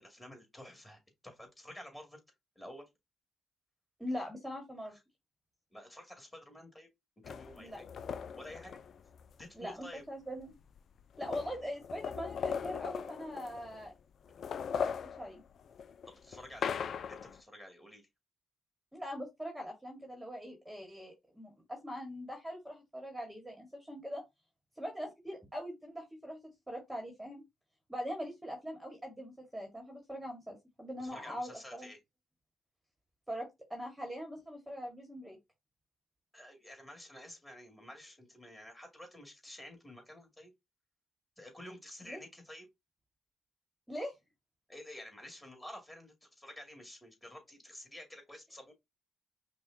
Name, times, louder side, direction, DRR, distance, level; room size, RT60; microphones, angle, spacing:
voice 1, 0.0-2.2 2.6-2.9 5.7-6.9 7.3-7.8 8.4-8.8 9.4-10.0 16.2-16.8 17.1-18.0 31.0-32.0 36.3-40.5 41.4-42.7 44.7-48.7, left 1 dB, 10° left, 2.1 m, -50 dB
voice 2, 4.0-4.9 7.6-7.8 9.5-10.5 11.2-13.9 14.7-15.4 18.9-24.2 24.8-26.4 26.7-27.4 27.9-31.9 33.3-35.4 42.0-42.2 43.9-44.1, equal, 10° right, 1.4 m, -42 dB
sound 1, 7.2-9.4 10.4-10.5 10.8-13.9 14.3-17.4, left 7 dB, 60° left, 0.3 m, -39 dB
5.5 x 2.3 x 2.6 m
hypercardioid pair, 50°, 0 cm